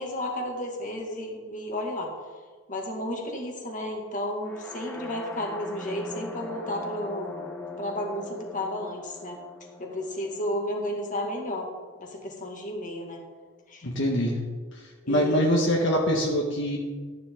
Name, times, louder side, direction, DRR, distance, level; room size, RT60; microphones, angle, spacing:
voice 1, 0.0-2.1 2.7-9.4 9.8-11.7 12.0-13.2 13.7-13.9 15.0-15.4, left 1 dB, 40° left, 0 dB, 2.2 m, -32 dB
sound 1, 4.4-12.3, left 2 dB, 10° left, 1.1 m, -42 dB
voice 2, 13.8-14.4 14.7-16.8, equal, 65° left, -1 dB, 1.7 m, -24 dB
14.0 x 11.0 x 3.9 m, 1.4 s
head